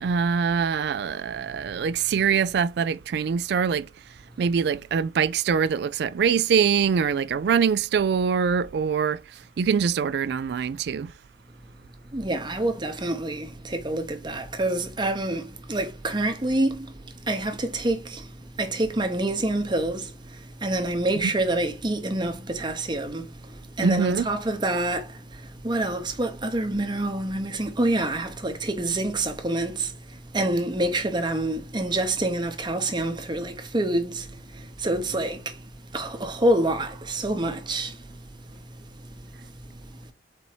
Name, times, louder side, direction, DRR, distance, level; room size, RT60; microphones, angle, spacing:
voice 1, 0.0-3.9 4.4-9.2 9.6-11.1 21.1-21.3 23.8-24.3 34.8-35.1, right 6 dB, 65° right, 0.3 m, -24 dB
voice 2, 12.1-16.9 17.3-18.3 18.6-20.1 20.6-23.3 23.8-25.1 25.6-29.9 30.3-34.3 34.8-35.5 35.9-38.0, right 1 dB, 25° right, 0.8 m, -26 dB
4.3 x 2.8 x 4.4 m
head